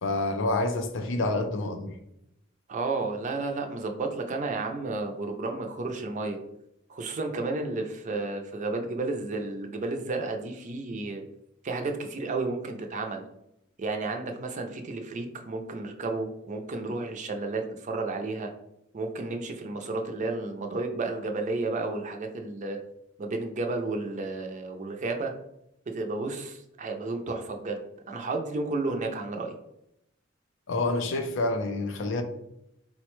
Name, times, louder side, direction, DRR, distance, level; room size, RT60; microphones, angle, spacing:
voice 1, 0.0-2.0 30.7-32.2, left 2 dB, 65° left, 0.5 m, -28 dB
voice 2, 2.7-6.4 6.9-11.2 11.6-13.2 13.8-18.5 18.9-22.8 23.2-25.3 25.9-27.8 28.1-29.5, right 3 dB, 40° right, 0.4 m, -32 dB
3.9 x 2.1 x 3.0 m
head